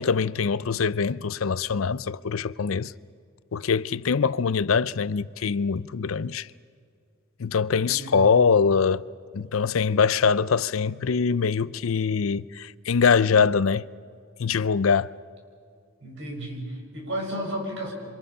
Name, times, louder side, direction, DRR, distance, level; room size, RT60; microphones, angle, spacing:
voice 1, 0.0-2.9 3.5-6.5 7.4-9.0 9.3-13.9 14.4-15.1, left 5 dB, 85° left, 0.5 m, -23 dB
voice 2, 7.9-8.4 16.0-17.9, right 1 dB, 65° right, 6.0 m, -33 dB
27.5 x 26.0 x 5.7 m
head